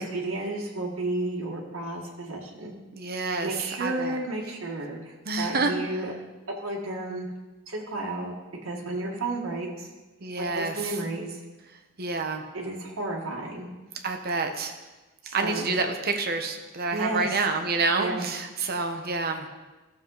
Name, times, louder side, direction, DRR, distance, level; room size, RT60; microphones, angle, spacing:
voice 1, 0.0-2.7 3.4-6.1 6.6-7.3 7.7-8.3 8.6-9.9 10.4-11.4 12.5-13.7 15.2-15.8 16.9-17.4 18.0-18.3, right 2 dB, 75° right, -3 dB, 1.7 m, -32 dB
voice 2, 3.0-3.5 3.8-4.2 5.3-5.7 10.2-10.9 12.0-12.4 14.0-14.7 15.3-19.5, right 3 dB, 50° right, 4 dB, 1.1 m, -28 dB
14.5 x 6.9 x 4.0 m, 1.2 s
head